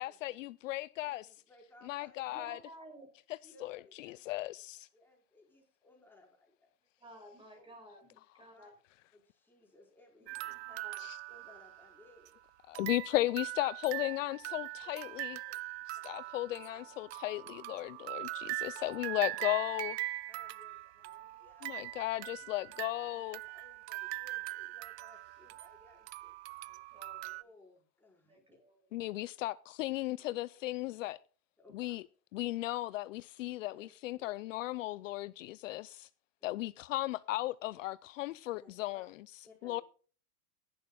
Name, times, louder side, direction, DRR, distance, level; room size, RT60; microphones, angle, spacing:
voice 1, 0.0-1.3 1.9-2.6 3.6-4.9 11.0-11.2 12.7-15.4 16.0-20.0 21.6-23.4 28.9-31.2 31.7-32.0 32.3-36.1 36.4-39.1 39.6-39.8, left 17 dB, 60° left, 0.6 m, -36 dB
voice 2, 1.0-2.6 3.4-4.4 4.9-6.7 7.5-7.7 8.5-8.7 9.1-10.8 11.3-12.4 14.8-15.6 15.9-16.2 16.5-16.8 17.7-17.8 19.2-19.3 20.3-21.9 22.7-26.4 27.4-28.6 29.2-29.3 31.0-31.1 31.6-32.0 33.7-33.9 34.2-34.3 36.4-36.7 38.5-39.1 39.4-39.8, left 2 dB, 5° left, 4.9 m, -62 dB
voice 3, 2.3-3.1 7.0-8.7 10.2-11.0 16.8-16.9 26.6-27.4 28.2-28.8 30.1-30.3, right 1 dB, 10° right, 5.4 m, -54 dB
sound 1, 10.3-12.3 12.7-27.4, right 18 dB, 45° right, 0.5 m, -42 dB
17.5 x 11.5 x 2.3 m
hypercardioid pair, 135°, 45 cm